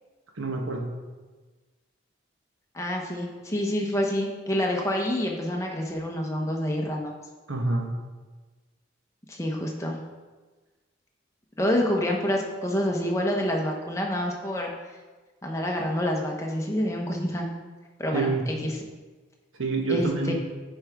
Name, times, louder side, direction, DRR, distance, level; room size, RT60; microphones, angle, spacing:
voice 1, 0.4-0.9 7.5-7.9 18.1-18.5 19.6-20.3, right 3 dB, 85° right, 1 dB, 1.2 m, -27 dB
voice 2, 2.7-7.2 9.3-10.0 11.6-14.7 15.4-17.5 18.0-18.7 19.9-20.3, left 1 dB, 15° left, 0 dB, 0.8 m, -27 dB
9.4 x 4.7 x 3.5 m, 1.3 s
head